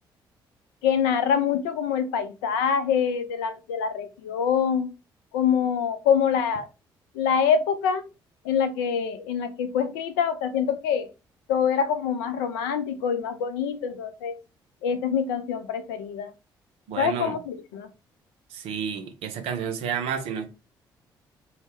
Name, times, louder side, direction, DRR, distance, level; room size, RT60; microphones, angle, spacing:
voice 1, 0.8-4.9 5.3-6.7 7.1-8.0 8.4-11.1 11.5-14.4 14.8-16.3 17.0-17.9, left 7 dB, 65° left, 0.4 m, -25 dB
voice 2, 16.9-17.4 18.5-20.5, right 7 dB, 55° right, 0.5 m, -30 dB
2.0 x 2.0 x 3.1 m
figure-of-eight pair, 45°, 12 cm